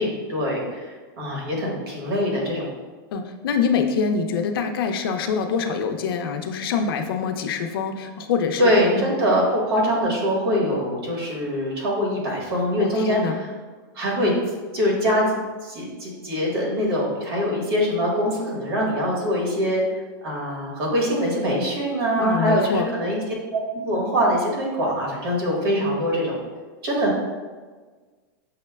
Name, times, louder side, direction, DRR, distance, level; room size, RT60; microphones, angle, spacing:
voice 1, 0.0-2.7 8.6-13.5 13.9-14.3 14.7-23.2 23.5-26.3 26.8-27.4, equal, 85° right, -2 dB, 1.3 m, -23 dB
voice 2, 3.1-9.1 12.8-13.4 22.2-22.9, left 6 dB, 80° left, 6 dB, 0.4 m, -25 dB
6.3 x 2.1 x 2.2 m, 1.4 s
supercardioid pair, 165°, 12 cm